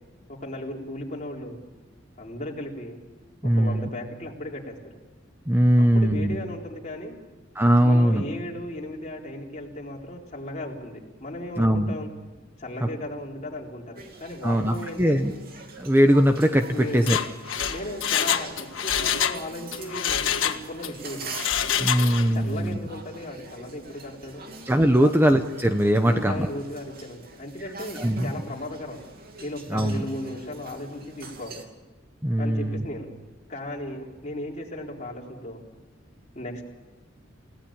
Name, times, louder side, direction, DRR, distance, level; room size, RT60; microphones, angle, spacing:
voice 1, 0.3-1.6 2.2-3.0 3.4-4.7 5.8-7.1 7.8-12.1 12.6-15.3 16.7-17.2 17.7-21.3 22.3-24.5 24.9-25.1 26.0-29.0 29.4-31.6 32.4-33.1 33.5-35.6 36.4-36.7, left 1 dB, 35° left, -1 dB, 4.0 m, -36 dB
voice 2, 3.4-3.9 5.5-6.4 7.5-8.2 11.6-11.9 12.8-12.9 14.4-15.3 15.8-17.2 21.8-22.8 24.7-26.5 28.0-28.3 29.7-30.0 32.2-32.9, equal, 10° right, 6 dB, 1.0 m, -21 dB
sound 1, 14.0-31.7, right 3 dB, 50° right, 2.9 m, -44 dB
Mechanisms, 16.9-19.4 19.7-20.9 21.3-22.4 22.7-22.8, left 8 dB, 90° left, 1.6 m, -26 dB
28.5 x 17.0 x 8.8 m, 1.3 s
head